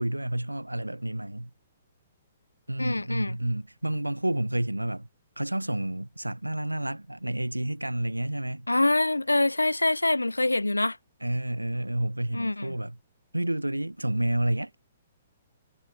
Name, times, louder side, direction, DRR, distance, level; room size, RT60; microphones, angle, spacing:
voice 1, 0.0-1.5 2.7-5.1 5.4-8.7 11.2-13.0 13.3-14.9, right 1 dB, 90° right, 0.6 m, -30 dB
voice 2, 2.8-3.4 8.7-11.0 12.3-12.8, left 2 dB, 85° left, 0.4 m, -25 dB
figure-of-eight pair, 120°, 0 cm